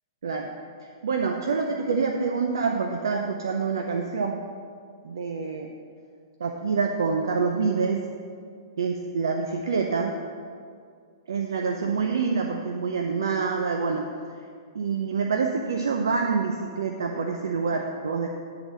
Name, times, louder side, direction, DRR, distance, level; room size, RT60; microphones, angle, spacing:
voice 1, 0.8-4.4 5.0-5.7 6.4-8.1 8.8-10.1 11.3-14.1 14.7-18.3, right 5 dB, 85° right, 3 dB, 0.6 m, -26 dB
9.8 x 3.9 x 7.2 m, 2.2 s
hypercardioid pair, 135°, 2 cm